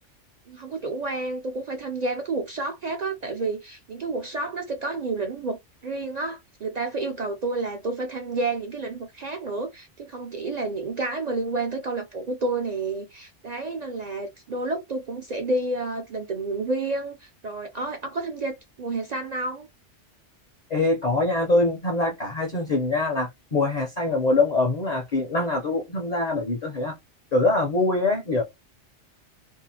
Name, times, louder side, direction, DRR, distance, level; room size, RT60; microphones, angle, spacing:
voice 1, 0.5-19.7, right 2 dB, 55° right, 0.4 m, -30 dB
voice 2, 20.7-26.9 27.3-28.4, left 2 dB, 45° left, 0.6 m, -24 dB
2.7 x 2.3 x 2.7 m
omnidirectional pair, 1.2 m